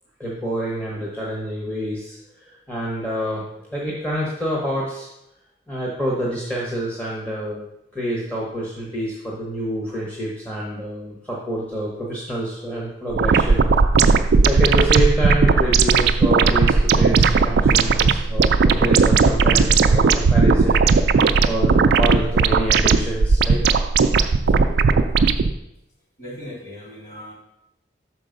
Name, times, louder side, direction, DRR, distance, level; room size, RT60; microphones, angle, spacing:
voice 1, 0.2-3.4 3.7-5.1 5.7-7.6 7.9-13.7 14.0-23.6 24.7-25.1, equal, 5° left, -5 dB, 1.0 m, -27 dB
sound 1, 13.1-25.5, right 4 dB, 60° right, 0.4 m, -17 dB
voice 2, 26.2-27.3, left 1 dB, 40° left, -5 dB, 2.9 m, -37 dB
6.2 x 4.6 x 5.1 m, 0.83 s
head